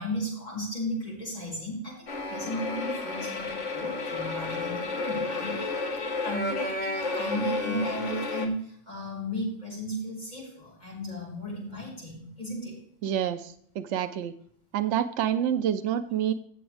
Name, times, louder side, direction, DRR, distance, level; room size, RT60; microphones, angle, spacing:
voice 1, 0.0-12.8, equal, 35° left, -6 dB, 5.8 m, -35 dB
sound 1, 2.1-8.5, left 3 dB, 75° left, 1.7 m, -31 dB
voice 2, 13.0-14.3 14.7-16.3, right 10 dB, 75° right, 9 dB, 0.9 m, -28 dB
16.5 x 7.1 x 3.3 m, 0.64 s
omnidirectional pair, 1.2 m